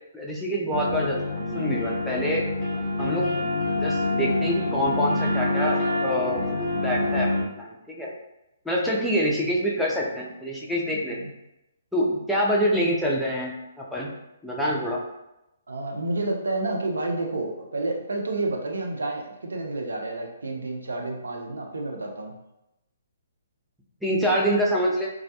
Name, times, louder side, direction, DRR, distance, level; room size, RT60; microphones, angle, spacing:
voice 1, 0.1-2.5 3.0-3.3 3.8-6.4 6.8-8.1 8.6-11.2 11.9-14.1 14.4-15.0 24.0-25.1, equal, ahead, -5 dB, 0.5 m, -26 dB
sound 1, 0.7-7.4, left 2 dB, 20° left, 0.9 m, -26 dB
voice 2, 10.9-11.3 15.7-22.4, right 2 dB, 75° right, 1 dB, 0.5 m, -30 dB
2.3 x 2.1 x 2.7 m, 0.90 s
figure-of-eight pair, 135°, 0 cm